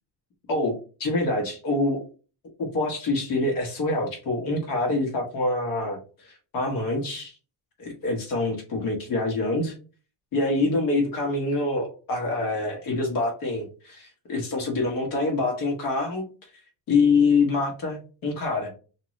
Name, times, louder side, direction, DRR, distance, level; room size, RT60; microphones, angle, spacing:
voice 1, 1.0-2.0 2.6-7.4 7.8-9.7 10.3-16.2 16.9-18.7, left 3 dB, 50° left, 1 dB, 1.4 m, -25 dB
3.6 x 2.9 x 3.0 m, 0.35 s
cardioid pair, 160°, 42 cm